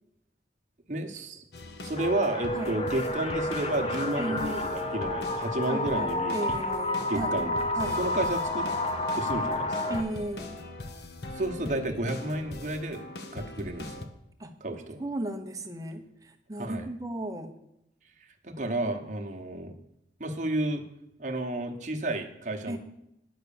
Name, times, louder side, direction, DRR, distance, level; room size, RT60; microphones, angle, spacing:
voice 1, 0.9-1.4 1.8-6.6 7.1-7.6 8.0-8.7 9.1-10.0 11.4-13.1 13.3-14.1 14.6-15.0 16.6-16.9 18.2-19.7 20.2-20.8 21.2-22.8, right 2 dB, 45° right, 4 dB, 1.1 m, -32 dB
sound 1, 1.5-14.1, left 2 dB, 70° left, 0.9 m, -42 dB
sound 2, 2.0-10.0, left 1 dB, 35° left, 0.7 m, -30 dB
voice 2, 2.5-2.8 4.2-4.7 5.6-7.5 7.7-8.1 9.9-10.5 14.4-14.5 15.0-17.5 22.7-22.8, right 1 dB, 20° right, 4 dB, 0.8 m, -35 dB
9.8 x 6.1 x 6.9 m, 0.81 s
head